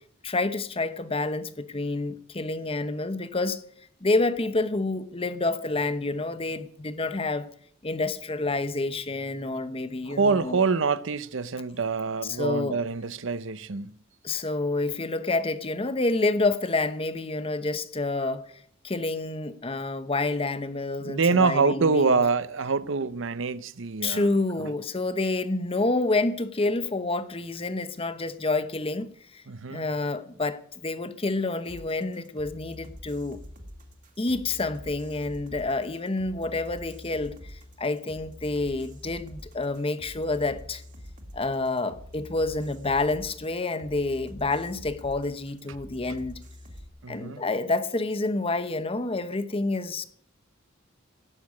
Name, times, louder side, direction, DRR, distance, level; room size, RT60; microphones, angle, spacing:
voice 1, 0.2-3.6 4.0-7.5 7.8-10.6 12.2-12.8 14.2-18.5 18.8-22.2 24.0-29.4 29.7-33.4 34.2-40.8 41.3-46.4 47.1-50.0, left 2 dB, 30° left, 0.9 m, -28 dB
voice 2, 10.1-14.0 21.0-24.3 24.6-24.7 29.5-29.8 47.0-47.4, right 4 dB, 65° right, 0.7 m, -25 dB
sound 1, 31.7-46.9, left 1 dB, 40° right, 2.3 m, -45 dB
17.5 x 6.6 x 8.5 m
head